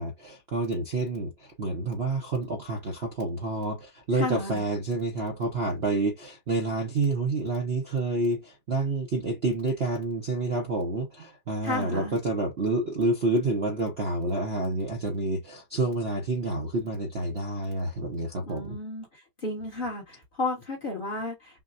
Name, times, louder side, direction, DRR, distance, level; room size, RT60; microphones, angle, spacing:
voice 1, 0.0-18.8, right 2 dB, 45° right, 0.9 m, -28 dB
voice 2, 4.1-4.6 11.6-12.2 18.5-21.6, left 2 dB, 30° left, 1.3 m, -33 dB
5.9 x 2.3 x 2.5 m
omnidirectional pair, 2.0 m